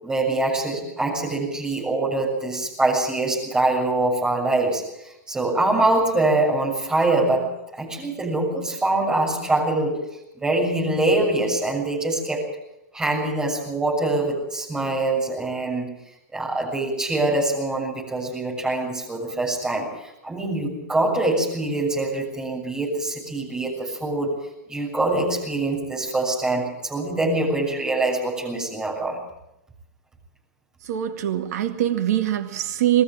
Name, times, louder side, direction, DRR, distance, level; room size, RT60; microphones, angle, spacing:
voice 1, 0.0-10.0 10.4-12.5 12.9-16.0 16.3-24.4 24.7-29.2, right 2 dB, 10° right, -5 dB, 7.0 m, -24 dB
voice 2, 30.8-33.0, right 12 dB, 60° right, 6 dB, 2.2 m, -23 dB
21.5 x 14.5 x 9.0 m, 0.89 s
supercardioid pair, 160°, 10 cm